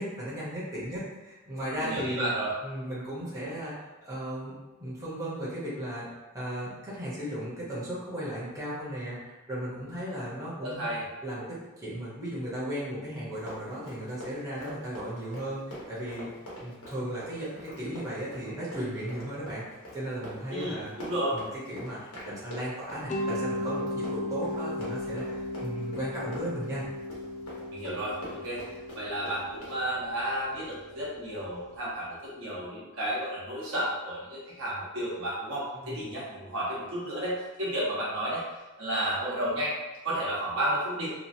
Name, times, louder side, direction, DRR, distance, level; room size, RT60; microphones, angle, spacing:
voice 1, 0.0-2.3 2.6-6.1 6.3-10.9 11.2-15.6 15.9-16.3 16.6-19.6 19.9-20.9 21.3-26.8 35.8-36.0, equal, 15° right, -9 dB, 0.8 m, -36 dB
voice 2, 1.8-2.5 10.6-11.0 20.5-21.4 27.7-28.6 28.9-38.4 38.8-39.7 40.0-41.1, right 1 dB, 65° right, -7 dB, 1.0 m, -32 dB
Run, 13.3-29.8, equal, 75° left, 1.0 m, -43 dB
Mallet percussion, 23.1-31.9, left 1 dB, 35° left, 0.3 m, -36 dB
2.8 x 2.5 x 2.6 m, 1.1 s
head